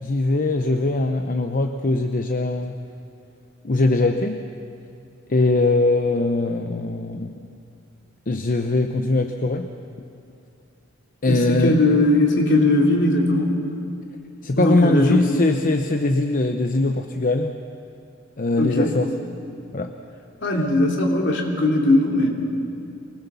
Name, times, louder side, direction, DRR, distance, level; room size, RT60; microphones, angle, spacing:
voice 1, 0.0-2.8 3.6-4.5 5.3-7.3 8.3-9.7 11.2-11.8 14.4-17.5 18.4-19.1 19.7-19.9, left 2 dB, 45° left, 6 dB, 0.8 m, -21 dB
voice 2, 11.3-13.6 14.5-15.3 18.6-19.0 20.4-22.3, left 1 dB, 65° left, 0 dB, 3.1 m, -19 dB
24.5 x 20.0 x 7.0 m, 2.7 s
head